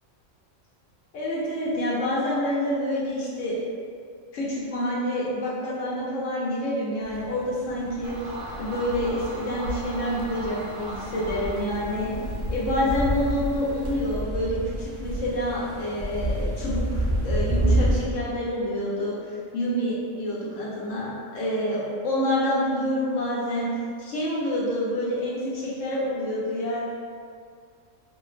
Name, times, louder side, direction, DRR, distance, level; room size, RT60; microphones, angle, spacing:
voice 1, 1.1-3.6 4.3-8.2 8.6-12.1 12.5-19.2 19.5-23.7 24.0-26.8, left 1 dB, 80° left, -6 dB, 1.1 m, -27 dB
sound 1, 7.0-18.1, right 1 dB, 55° right, 0.7 m, -29 dB
sound 2, 8.0-14.2, right 1 dB, 80° right, 0.9 m, -38 dB
2.9 x 2.4 x 3.1 m, 2.2 s
omnidirectional pair, 1.3 m